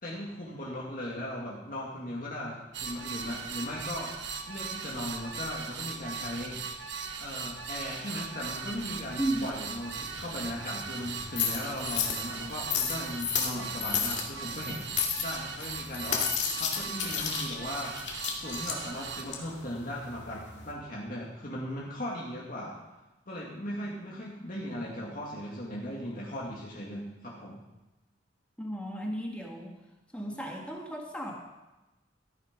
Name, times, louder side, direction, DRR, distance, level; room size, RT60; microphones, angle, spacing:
voice 1, 0.0-4.1 4.5-6.8 7.2-14.9 15.2-16.3 16.6-22.8 23.3-27.6, left 1 dB, 50° left, -4 dB, 2.2 m, -38 dB
sound 1, 2.7-19.2, right 6 dB, 75° right, 1.2 m, -39 dB
sound 2, 8.7-20.7, left 7 dB, 75° left, 2.3 m, -34 dB
voice 2, 28.6-29.7 30.1-31.4, right 1 dB, 5° left, -1 dB, 1.7 m, -34 dB
14.5 x 9.6 x 5.3 m, 1.0 s
head